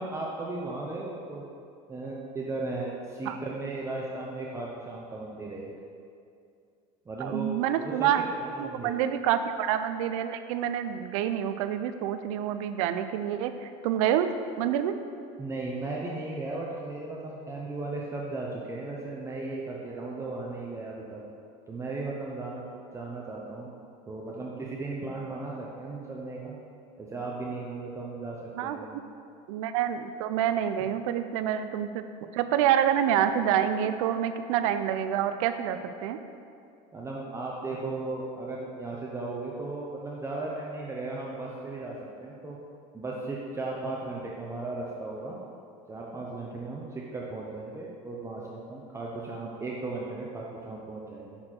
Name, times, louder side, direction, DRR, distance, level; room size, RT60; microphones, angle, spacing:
voice 1, 0.0-1.4 1.9-5.7 7.1-7.5 7.8-7.9 8.4-8.9 15.4-21.2 21.7-22.6 22.9-23.7 24.1-26.6 27.0-29.0 36.9-42.0 42.2-42.6 42.9-45.4 45.9-51.4, right 2 dB, 15° right, -3 dB, 0.7 m, -36 dB
voice 2, 7.2-8.2 8.6-14.3 14.6-14.9 28.6-28.8 29.5-36.2, right 10 dB, 80° right, 10 dB, 0.4 m, -27 dB
6.5 x 4.3 x 4.3 m, 2.4 s
supercardioid pair, 100°, 17 cm